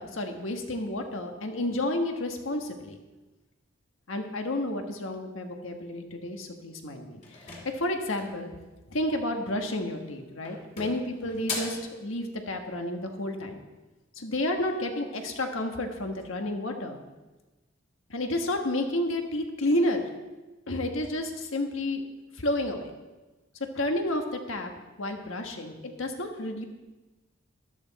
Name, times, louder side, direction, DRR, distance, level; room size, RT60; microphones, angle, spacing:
voice 1, 0.0-3.0 4.1-8.5 8.9-13.6 14.1-17.0 18.1-20.0 20.7-22.0 22.4-22.9 23.7-24.7 25.0-26.6, left 1 dB, 75° left, 4 dB, 1.5 m, -31 dB
sound 1, 7.2-8.5 9.7-10.1 10.4-11.9, left 3 dB, 35° left, 2.7 m, -38 dB
13.0 x 12.0 x 4.2 m, 1.2 s
head